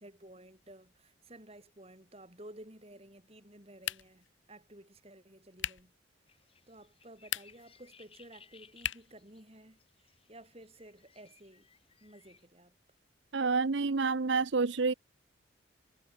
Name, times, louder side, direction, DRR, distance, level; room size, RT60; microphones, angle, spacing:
voice 1, 0.0-5.9 6.7-11.7 12.0-12.7, right 1 dB, 30° right, 5.2 m, -54 dB
sound 1, 3.8-4.3 5.6-5.9 7.2-7.7 8.8-9.2, left 11 dB, 75° left, 1.3 m, -38 dB
sound 2, 6.3-12.5, left 6 dB, 30° left, 7.5 m, -62 dB
voice 2, 13.3-14.9, right 4 dB, 65° right, 0.7 m, -28 dB
head